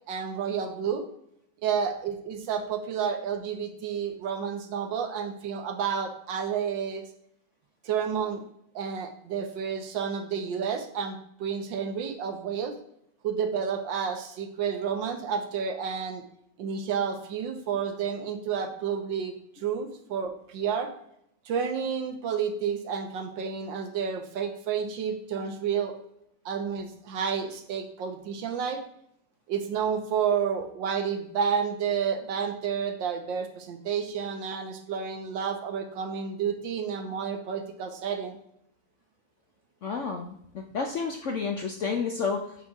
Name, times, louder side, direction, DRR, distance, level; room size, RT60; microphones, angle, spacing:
voice 1, 0.1-1.1 1.6-7.0 7.8-8.4 8.7-12.7 13.2-16.2 16.6-19.3 19.6-20.9 21.4-25.9 26.4-28.8 29.5-38.4, right 7 dB, 85° right, 6 dB, 1.6 m, -30 dB
voice 2, 39.8-42.6, left 5 dB, 65° left, 3 dB, 0.7 m, -31 dB
8.1 x 6.1 x 3.6 m, 0.73 s
omnidirectional pair, 2.0 m